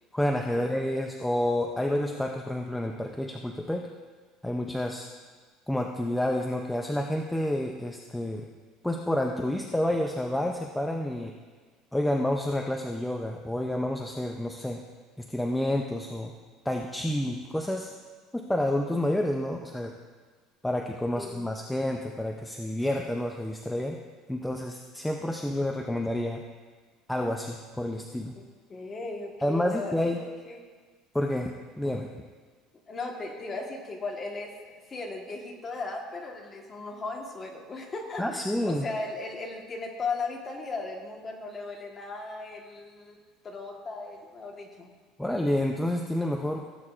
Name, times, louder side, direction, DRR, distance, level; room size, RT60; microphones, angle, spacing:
voice 1, 0.1-3.9 4.4-5.1 5.7-8.5 8.8-11.3 11.9-14.8 15.2-16.3 16.7-17.9 18.3-20.0 20.6-24.0 24.3-26.4 27.1-28.3 29.4-30.2 31.1-32.1 38.2-38.9 45.2-46.7, left 1 dB, 5° left, 2 dB, 0.5 m, -29 dB
voice 2, 21.1-21.5 28.4-28.5 28.7-30.0 30.5-30.6 32.9-43.2 43.4-44.9, left 3 dB, 20° left, 0 dB, 1.3 m, -37 dB
17.0 x 8.5 x 2.5 m, 1.5 s
cardioid pair, 160°, 0 cm